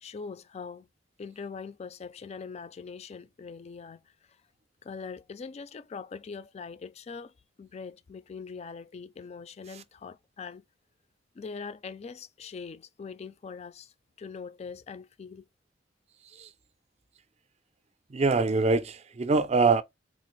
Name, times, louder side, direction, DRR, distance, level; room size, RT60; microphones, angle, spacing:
voice 1, 0.0-0.9 1.2-4.4 4.8-10.6 11.3-15.5, left 5 dB, 35° left, 0.3 m, -42 dB
voice 2, 18.1-19.8, right 4 dB, 35° right, 0.4 m, -24 dB
3.9 x 2.4 x 3.0 m
head